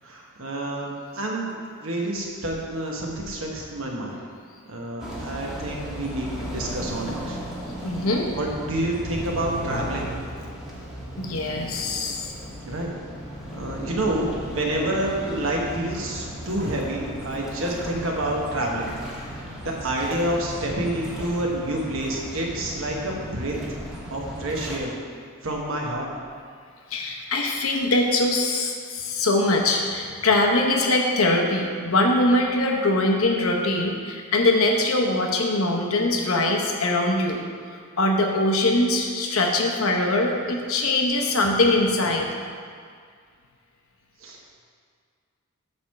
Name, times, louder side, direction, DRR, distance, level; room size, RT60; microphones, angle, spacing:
voice 1, 0.0-1.5 1.8-4.2 4.7-7.4 8.4-10.1 12.7-12.9 13.5-18.9 19.2-23.6 23.9-25.0 25.4-26.1 44.2-44.4, right 1 dB, 65° right, -1 dB, 1.2 m, -28 dB
sound 1, 5.0-24.8, equal, ahead, 1.2 m, -36 dB
voice 2, 7.8-8.3 11.2-12.3 26.9-37.4 38.0-42.3, left 2 dB, 75° left, 1 dB, 0.9 m, -22 dB
8.5 x 3.6 x 6.5 m, 2.1 s
head